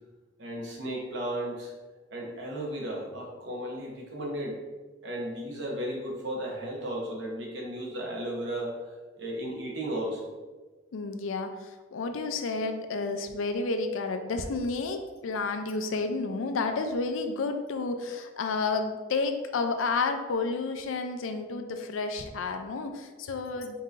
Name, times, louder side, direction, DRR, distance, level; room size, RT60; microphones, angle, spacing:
voice 1, 0.4-1.7 2.1-4.6 5.0-10.3, right 1 dB, 60° right, -2 dB, 0.9 m, -35 dB
voice 2, 10.9-23.8, left 3 dB, 75° left, 7 dB, 0.4 m, -31 dB
5.4 x 2.7 x 2.5 m, 1.3 s
head